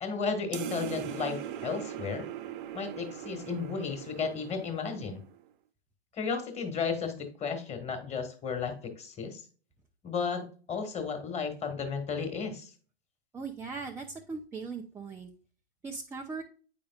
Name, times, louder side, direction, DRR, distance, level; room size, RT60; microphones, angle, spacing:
voice 1, 0.0-2.3 2.7-5.2 6.1-9.4 10.0-12.7, left 5 dB, 20° left, 6 dB, 1.5 m, -34 dB
sound 1, 0.5-5.4, right 11 dB, 50° right, 0.7 m, -40 dB
voice 2, 13.3-15.3 15.8-16.4, right 4 dB, 10° right, 0 dB, 0.4 m, -39 dB
8.4 x 5.2 x 2.4 m, 0.40 s
hypercardioid pair, 115°, 32 cm